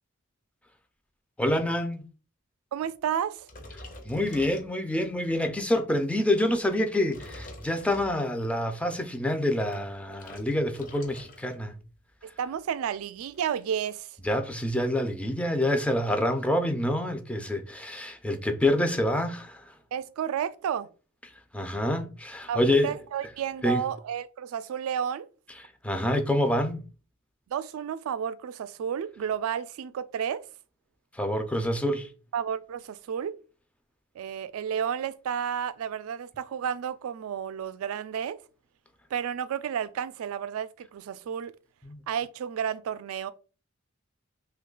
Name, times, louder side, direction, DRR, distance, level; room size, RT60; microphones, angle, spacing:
voice 1, 1.4-2.0 4.1-11.7 14.2-19.6 21.5-22.9 23.6-23.8 25.8-26.8 31.1-32.1 41.9-42.0, left 1 dB, 5° left, 0.4 m, -27 dB
voice 2, 2.7-3.5 12.4-14.2 19.9-20.9 22.5-25.3 27.5-30.4 32.3-33.3 34.2-38.4 39.1-41.5 42.1-43.3, right 8 dB, 80° right, 0.3 m, -31 dB
sound 1, 3.4-5.2 5.7-6.0 6.7-8.5 9.4-11.6 11.9-12.2 12.5-12.6 12.8-13.9, left 1 dB, 40° left, 0.7 m, -47 dB
2.9 x 2.3 x 3.7 m
head